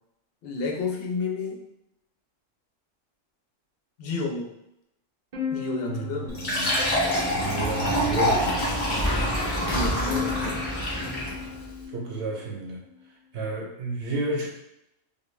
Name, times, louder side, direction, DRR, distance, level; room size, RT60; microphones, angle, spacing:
voice 1, 0.4-1.6 4.0-4.5 5.5-6.4 9.6-10.7 10.9-11.5, left 4 dB, 60° left, 0 dB, 0.7 m, -31 dB
sound 1, 5.3-12.4, left 2 dB, 45° right, 0.6 m, -36 dB
sound 2, 6.1-11.7, equal, 25° left, 0.5 m, -31 dB
Fill (with liquid), 6.3-11.4, left 1 dB, 45° left, 1.0 m, -27 dB
voice 2, 7.3-8.7 11.9-12.8 13.3-14.5, right 3 dB, 70° right, -2 dB, 0.9 m, -31 dB
2.3 x 2.2 x 3.1 m, 0.83 s
omnidirectional pair, 1.3 m